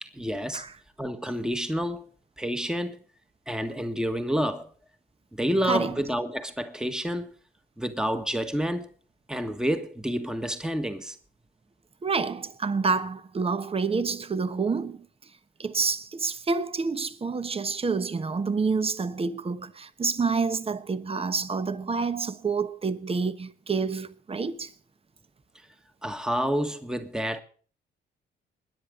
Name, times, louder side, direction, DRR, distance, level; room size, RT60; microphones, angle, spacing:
voice 1, 0.0-0.6 1.0-2.1 2.4-3.0 3.5-4.7 5.3-7.3 7.8-8.9 9.3-11.1 26.0-27.4, equal, 5° right, 1.6 m, -29 dB
voice 2, 12.0-15.1 15.6-24.7, right 4 dB, 30° right, 1.2 m, -28 dB
21.5 x 10.0 x 3.8 m
cardioid pair, 90°, 20 cm